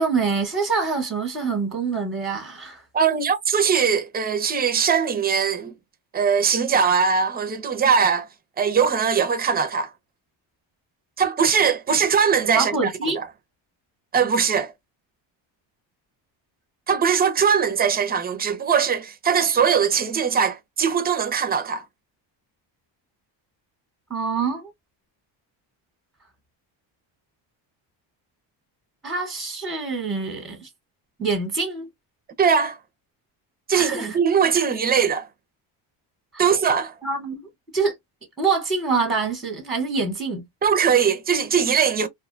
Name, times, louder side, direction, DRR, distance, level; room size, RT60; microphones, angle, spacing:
voice 1, 0.0-2.8 12.5-13.2 24.1-24.7 29.0-30.7 31.2-31.9 33.7-34.2 34.6-34.7 37.0-37.5 37.7-37.9 38.4-40.4, right 4 dB, ahead, 0.8 m, -25 dB
voice 2, 2.9-5.7 6.1-8.3 8.6-9.9 11.2-12.7 14.1-14.7 16.9-21.8 32.4-32.8 33.7-35.3 36.4-36.9 40.6-42.1, right 6 dB, 20° right, 0.4 m, -20 dB
2.4 x 2.1 x 2.4 m
cardioid pair, 130°, 47 cm